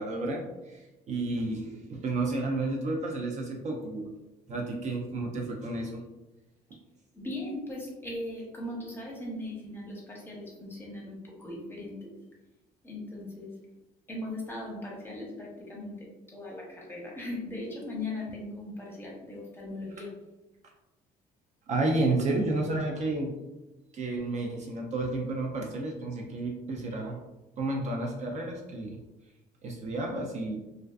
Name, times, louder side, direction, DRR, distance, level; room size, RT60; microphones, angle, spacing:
voice 1, 0.0-4.1 4.5-6.0 21.7-23.4 23.9-27.2 27.6-29.0 29.6-30.6, right 2 dB, 45° right, 0 dB, 0.4 m, -31 dB
voice 2, 7.1-12.1 12.8-13.5 14.1-20.1, left 1 dB, 15° left, -3 dB, 0.8 m, -39 dB
2.4 x 2.3 x 2.2 m, 1.0 s
cardioid pair, 110°, 17 cm